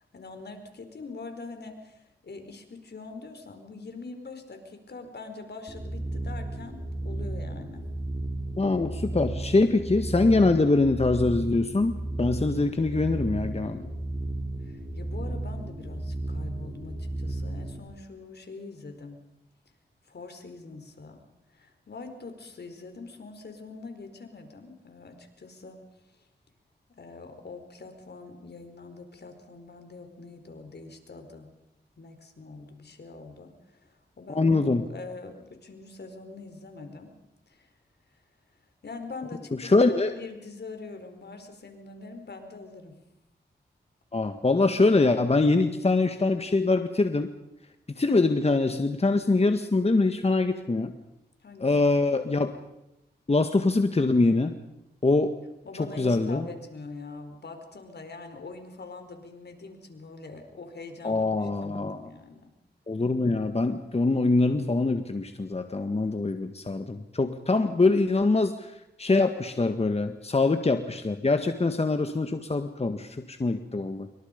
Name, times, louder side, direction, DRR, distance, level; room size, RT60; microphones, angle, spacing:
voice 1, 0.1-7.8 14.6-19.2 20.1-21.2 21.5-25.8 26.1-26.2 27.0-31.5 32.0-37.1 37.5-37.7 38.8-42.9 51.4-52.0 55.6-62.5, left 3 dB, 70° left, 7 dB, 4.7 m, -43 dB
sound 1, 5.7-17.8, right 1 dB, 25° right, 4.8 m, -34 dB
voice 2, 8.6-13.9 34.4-34.9 39.6-40.1 44.1-47.3 48.0-50.9 51.6-52.5 53.3-54.5 55.0-55.3 56.0-56.5 61.0-62.0 62.9-68.7 69.0-74.1, left 3 dB, 35° left, 7 dB, 1.8 m, -24 dB
27.0 x 24.5 x 5.3 m, 0.88 s
cardioid pair, 55°, 18 cm